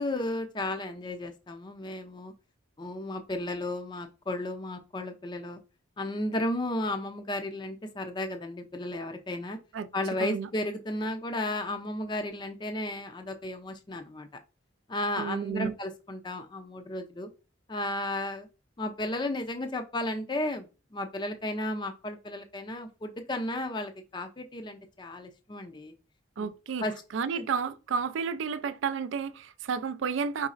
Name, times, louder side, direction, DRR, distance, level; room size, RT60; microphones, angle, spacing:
voice 1, 0.0-2.3 2.8-5.6 6.0-9.6 9.9-14.3 14.9-17.3 17.7-18.5 18.8-25.9 26.4-26.5 26.8-26.9 27.3-27.5, left 1 dB, 25° left, 0.4 m, -34 dB
voice 2, 15.2-15.7 26.4-26.9 27.1-30.5, right 6 dB, 75° right, 0.4 m, -31 dB
4.9 x 4.0 x 2.4 m
head